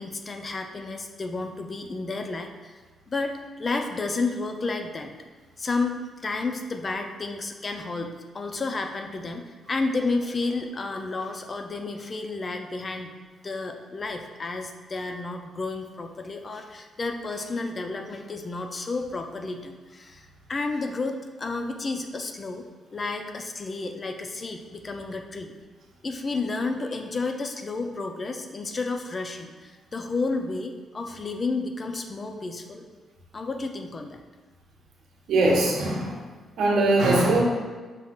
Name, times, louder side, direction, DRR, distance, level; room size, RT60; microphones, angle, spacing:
voice 1, 0.0-5.1 5.6-13.2 13.4-22.6 22.9-25.5 26.0-32.8 33.3-34.2, left 3 dB, 30° left, 5 dB, 0.3 m, -31 dB
voice 2, 35.3-36.2 36.6-37.4, right 2 dB, 80° right, -2 dB, 0.9 m, -21 dB
5.4 x 2.4 x 3.6 m, 1.4 s
cardioid pair, 125°, 0 cm